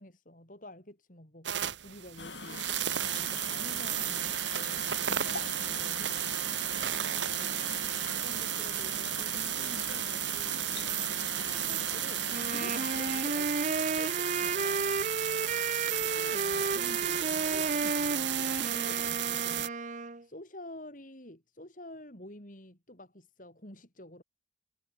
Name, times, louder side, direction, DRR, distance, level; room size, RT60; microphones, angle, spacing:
voice 1, 0.0-2.7 3.1-6.4 7.4-7.6 8.2-10.9 11.2-14.8 16.2-24.2, left 1 dB, 45° left, 6.1 m, -49 dB
sound 1, 1.5-19.7, right 12 dB, 85° right, 1.1 m, -33 dB
sound 2, 2.2-13.2, left 4 dB, 85° left, 3.5 m, -43 dB
Wind instrument woodwind instrument, 12.3-20.2, right 3 dB, 45° right, 1.0 m, -33 dB
head